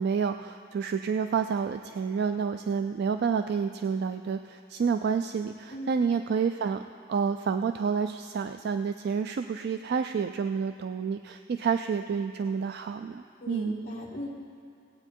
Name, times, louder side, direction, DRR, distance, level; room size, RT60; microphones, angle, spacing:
voice 1, 0.0-6.8 7.1-13.8, right 6 dB, 60° right, 8 dB, 0.3 m, -29 dB
voice 2, 5.7-6.1 13.4-14.3, equal, 40° left, -7 dB, 1.2 m, -37 dB
18.0 x 8.6 x 4.5 m, 2.5 s
head